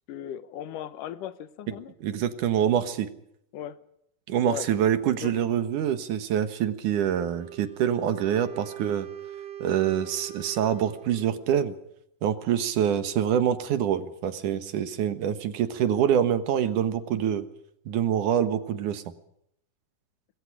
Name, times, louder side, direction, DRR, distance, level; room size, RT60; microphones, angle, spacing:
voice 1, 0.1-1.9 3.5-3.8 4.5-4.7 5.2-5.4, left 10 dB, 80° left, 2.7 m, -37 dB
voice 2, 2.0-3.1 4.3-9.1 9.6-11.7 12.2-17.5 17.9-19.0, right 9 dB, 75° right, 2.9 m, -25 dB
Wind instrument woodwind instrument, 7.1-11.5, right 11 dB, 30° right, 4.7 m, -42 dB
26.5 x 21.0 x 5.0 m
omnidirectional pair, 3.7 m